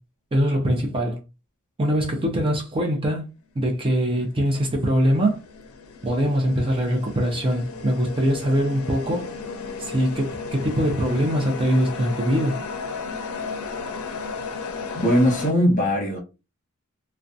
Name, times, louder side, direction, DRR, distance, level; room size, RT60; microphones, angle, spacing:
voice 1, 0.3-1.2 1.8-3.3 3.6-5.4 6.0-9.3 9.8-12.6, equal, 25° right, 0.5 m, -22 dB
sound 1, 4.0-15.5, left 4 dB, 70° left, 0.5 m, -34 dB
voice 2, 14.9-16.2, equal, 35° left, 1.0 m, -20 dB
2.4 x 2.1 x 2.6 m
head